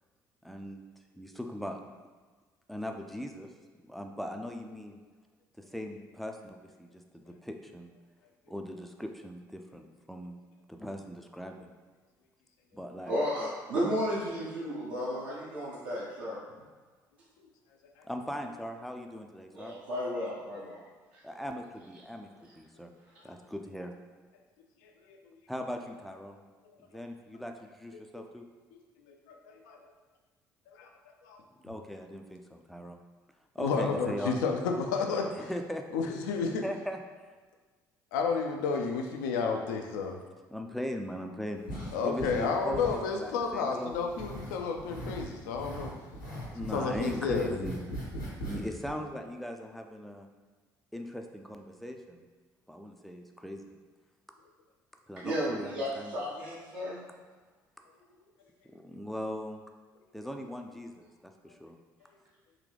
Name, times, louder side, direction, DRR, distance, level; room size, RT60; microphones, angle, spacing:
voice 1, 0.4-0.8 1.2-1.8 2.7-3.5 3.9-5.0 5.7-6.9 7.1-7.9 8.5-10.4 10.7-11.7 12.7-13.1 18.1-19.7 21.2-22.9 23.2-23.9 25.5-26.4 26.8-28.4 31.6-33.0 33.6-34.4 35.4-35.8 36.6-37.0 40.5-42.8 43.2-44.0 46.3-47.9 48.4-50.3 50.9-52.2 52.7-53.7 55.1-56.2 58.7-59.6 60.1-61.1 61.4-61.8, equal, ahead, 4 dB, 0.4 m, -39 dB
voice 2, 13.1-16.4 19.5-20.8 55.2-57.0, equal, 65° right, -8 dB, 0.9 m, -33 dB
voice 3, 29.1-29.8 30.7-30.9 31.2-31.4 33.6-35.5 35.9-36.6 38.1-40.2 41.9-45.9 46.7-47.7, left 5 dB, 70° left, 3 dB, 0.4 m, -31 dB
sound 1, 41.7-42.5 42.7-43.6 43.9-45.3 45.5-48.6 48.9-49.0, equal, 90° left, 1.1 m, -39 dB
3.8 x 2.8 x 3.2 m, 1.4 s
figure-of-eight pair, 50°, 10 cm